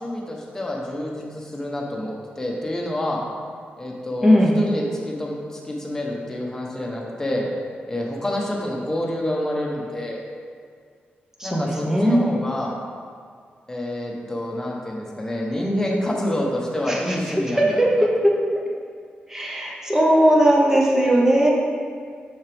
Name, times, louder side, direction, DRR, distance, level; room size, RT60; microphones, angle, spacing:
voice 1, 0.0-3.2 3.8-7.5 7.9-10.2 11.4-12.7 13.7-18.1, left 1 dB, 15° left, -2 dB, 1.0 m, -28 dB
voice 2, 4.2-4.6 11.4-12.2 16.9-17.2 17.5-18.4 19.3-21.5, equal, 15° right, -2 dB, 1.1 m, -18 dB
6.3 x 6.0 x 3.5 m, 2.1 s
wide cardioid pair, 120°, 4 cm